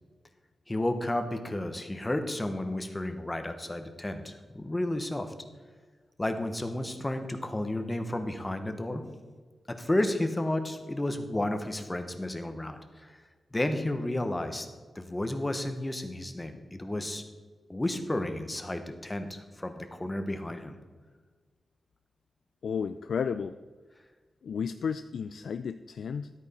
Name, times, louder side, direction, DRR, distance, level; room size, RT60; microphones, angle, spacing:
voice 1, 0.7-5.3 6.2-9.0 9.7-13.2 13.5-14.7 14.9-17.2 17.7-20.8, left 1 dB, 15° left, 7 dB, 0.9 m, -32 dB
voice 2, 22.6-23.5 24.4-26.3, left 6 dB, 80° left, 11 dB, 0.3 m, -32 dB
12.5 x 8.9 x 4.2 m, 1.4 s
wide cardioid pair, 170°, 0 cm